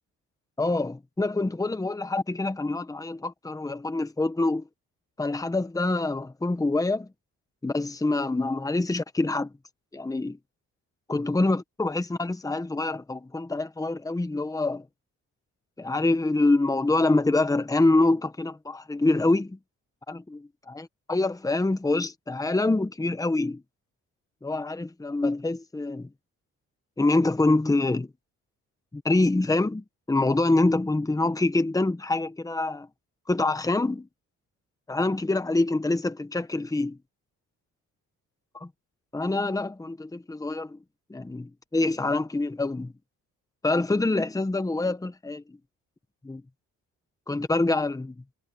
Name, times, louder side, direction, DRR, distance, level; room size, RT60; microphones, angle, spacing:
voice 1, 0.6-4.6 5.2-7.1 7.6-9.5 9.9-10.4 11.1-14.9 15.8-19.6 20.1-23.6 24.4-26.1 27.0-28.1 28.9-32.9 33.3-34.1 34.9-37.0 38.6-38.7 39.1-40.8 41.1-42.9 43.6-45.6 46.2-46.4 47.3-48.2, left 2 dB, 10° left, 1.3 m, -25 dB
cardioid pair, 90°, 30 cm